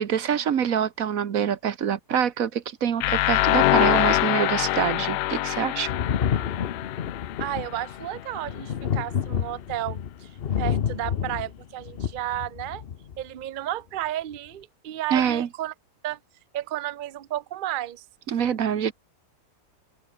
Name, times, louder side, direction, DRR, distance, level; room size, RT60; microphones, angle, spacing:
voice 1, 0.0-5.9 6.3-6.4 15.1-15.5 18.3-18.9, right 8 dB, 60° right, 1.5 m, -25 dB
sound 1, 3.0-7.9, left 16 dB, 80° left, 1.1 m, -24 dB
Thunder, 5.9-13.2 14.3-14.4, left 8 dB, 45° left, 0.9 m, -29 dB
voice 2, 7.4-10.3 10.6-12.8 13.2-15.7 16.0-16.2 16.5-18.0, right 13 dB, 85° right, 0.4 m, -32 dB
omnidirectional pair, 1.7 m